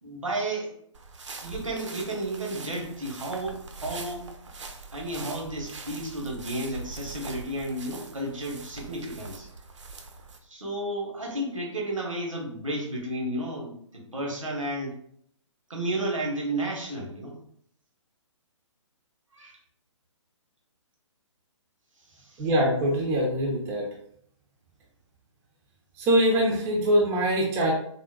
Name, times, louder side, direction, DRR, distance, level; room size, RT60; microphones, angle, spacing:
voice 1, 0.0-0.8 1.4-4.2 4.9-9.5 10.4-14.9 15.7-17.3 19.3-19.6 22.1-22.4, right 1 dB, 85° right, -2 dB, 0.9 m, -32 dB
sound 1, 0.9-10.4, right 3 dB, 65° right, 0.5 m, -42 dB
voice 2, 22.4-23.9 26.0-27.7, equal, 15° right, -1 dB, 0.4 m, -23 dB
3.6 x 2.1 x 2.2 m, 0.66 s
figure-of-eight pair, 130°, 16 cm